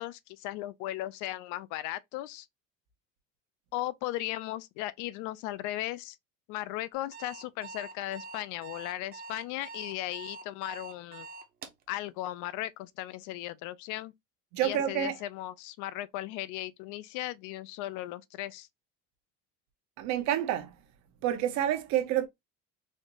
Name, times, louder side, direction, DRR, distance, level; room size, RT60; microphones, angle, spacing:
voice 1, 0.0-2.5 3.7-6.2 6.5-11.3 11.9-14.1 14.6-18.7, left 15 dB, 75° left, 0.5 m, -37 dB
Alarm, 6.9-11.8, right 3 dB, 30° right, 0.7 m, -44 dB
voice 2, 14.5-15.1 20.0-20.7 21.2-22.3, right 11 dB, 65° right, 0.8 m, -28 dB
4.2 x 2.5 x 3.0 m
cardioid pair, 160°, 30 cm